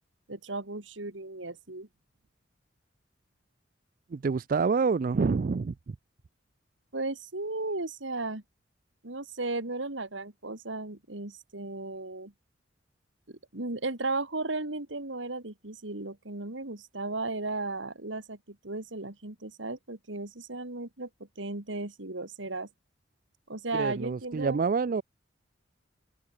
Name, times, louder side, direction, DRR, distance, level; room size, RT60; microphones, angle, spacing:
voice 1, 0.3-1.9 6.9-8.4 9.0-12.3 13.3-22.7 23.5-24.6, right 2 dB, 80° right, 2.6 m, -35 dB
voice 2, 4.1-5.7 23.7-25.0, right 5 dB, 45° right, 0.4 m, -27 dB
open air
head